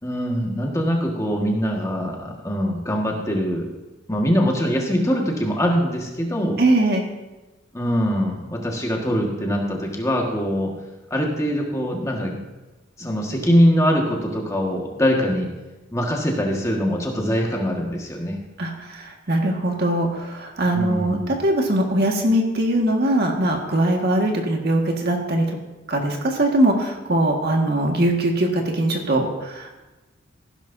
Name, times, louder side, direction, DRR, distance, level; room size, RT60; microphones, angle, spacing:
voice 1, 0.0-3.6 4.1-6.6 7.7-10.7 11.1-12.3 13.0-15.5 15.9-18.4 20.7-21.4, equal, 15° left, 0 dB, 1.7 m, -22 dB
voice 2, 6.6-7.1 18.6-25.6 25.9-29.7, right 1 dB, 55° right, 1 dB, 1.8 m, -21 dB
15.5 x 12.0 x 2.7 m, 1.1 s
head